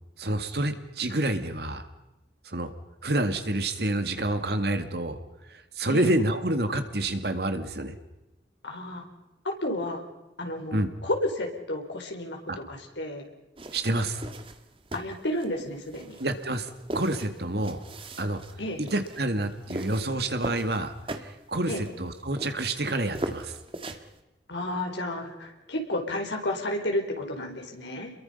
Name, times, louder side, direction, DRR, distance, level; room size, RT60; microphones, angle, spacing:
voice 1, 0.2-1.9 2.4-2.7 3.0-5.2 5.5-7.9 10.7-10.9 12.5-12.6 13.7-14.2 16.2-17.8 18.2-18.4 18.8-23.6, right 1 dB, 65° right, 8 dB, 2.2 m, -28 dB
voice 2, 8.6-9.0 9.4-10.0 10.4-12.4 12.7-13.2 14.9-16.2 18.6-18.8 21.7-21.8 24.5-28.1, left 1 dB, 85° left, 2 dB, 4.3 m, -31 dB
sound 1, 13.6-24.2, right 1 dB, 30° right, 1.6 m, -40 dB
28.5 x 22.5 x 5.5 m, 1.0 s
head